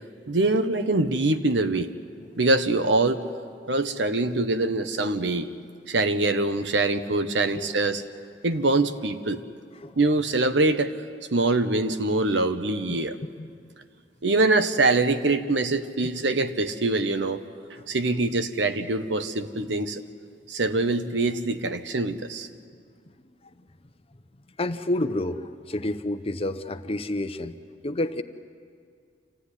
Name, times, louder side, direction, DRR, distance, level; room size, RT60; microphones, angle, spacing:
voice 1, 0.2-1.9 2.4-3.2 3.7-5.5 5.9-8.0 8.4-9.4 10.0-10.9 11.3-13.2 14.2-17.4 17.9-20.0 20.5-22.5, right 2 dB, 80° right, 9 dB, 1.1 m, -24 dB
voice 2, 9.8-10.1 12.9-13.0 13.4-13.5 17.8-17.9 24.6-27.6 27.8-28.2, left 1 dB, 35° left, 9 dB, 0.8 m, -29 dB
26.5 x 15.5 x 9.9 m, 2.2 s
head